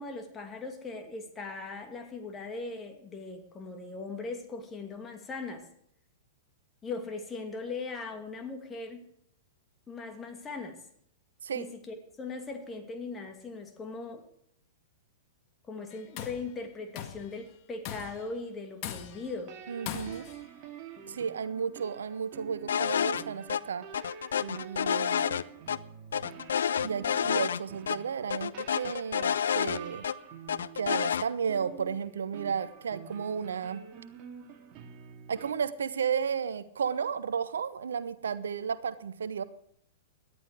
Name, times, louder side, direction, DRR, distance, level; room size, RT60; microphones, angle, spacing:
voice 1, 0.0-5.7 6.8-9.1 9.9-10.8 11.5-14.3 15.7-19.5, left 3 dB, 20° left, 4 dB, 2.5 m, -39 dB
Tools, 15.9-16.5 16.9-17.3 17.8-18.3 18.8-19.3 19.9-20.4, left 10 dB, 40° left, 1.7 m, -40 dB
sound 1, 19.1-35.5, right 8 dB, 35° right, 2.1 m, -48 dB
voice 2, 19.7-20.3 21.1-23.9 24.4-25.2 26.8-30.0 30.7-33.8 35.3-39.4, right 7 dB, 70° right, 15 dB, 0.8 m, -33 dB
sound 2, 22.7-23.2 23.5-23.6 23.9-25.8 26.1-27.6 27.9-28.0 28.3-30.1 30.5-31.2, left 8 dB, 70° left, 0.5 m, -29 dB
18.0 x 11.5 x 4.8 m, 0.69 s
figure-of-eight pair, 105°, 0 cm